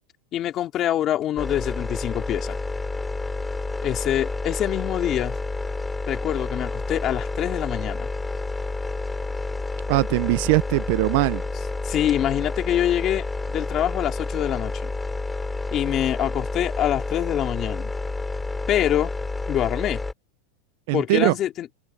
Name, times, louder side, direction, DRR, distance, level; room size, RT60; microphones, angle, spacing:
voice 1, 0.3-2.6 3.8-5.4 6.1-8.1 11.8-14.9 15.7-17.9 18.7-19.1 19.5-20.0 20.9-21.7, left 12 dB, 35° left, 3.0 m, -25 dB
sound 1, 1.4-20.1, left 3 dB, 10° left, 6.9 m, -29 dB
voice 2, 9.9-11.4 20.9-21.3, right 22 dB, 60° right, 0.8 m, -21 dB
supercardioid pair, 130°, 0 cm